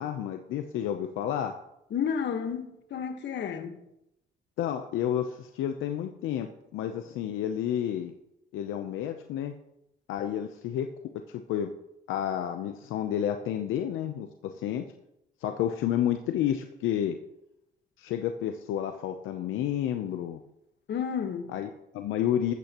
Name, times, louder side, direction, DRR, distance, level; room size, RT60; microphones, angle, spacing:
voice 1, 0.0-1.5 4.6-8.1 8.5-9.5 10.1-10.9 11.3-11.7 12.1-14.8 15.4-17.2 18.0-20.4 21.5-22.5, left 10 dB, 90° left, 0.7 m, -30 dB
voice 2, 1.9-3.8 20.9-21.5, left 7 dB, 65° left, 1.4 m, -31 dB
13.5 x 13.0 x 3.0 m
cardioid pair, 90°, 20 cm